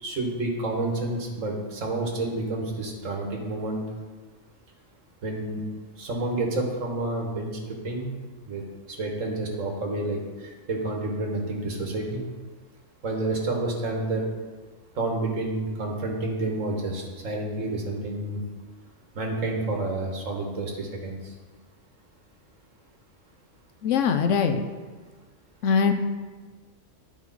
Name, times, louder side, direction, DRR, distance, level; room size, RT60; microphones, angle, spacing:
voice 1, 0.0-3.8 5.2-5.6 6.0-7.6 7.8-8.1 8.5-12.2 13.0-14.2 15.0-18.4 19.2-21.3, right 2 dB, 85° right, 1 dB, 1.8 m, -29 dB
voice 2, 23.8-24.6 25.6-25.9, left 6 dB, 75° left, 7 dB, 1.0 m, -21 dB
11.5 x 5.1 x 4.1 m, 1.4 s
omnidirectional pair, 1.3 m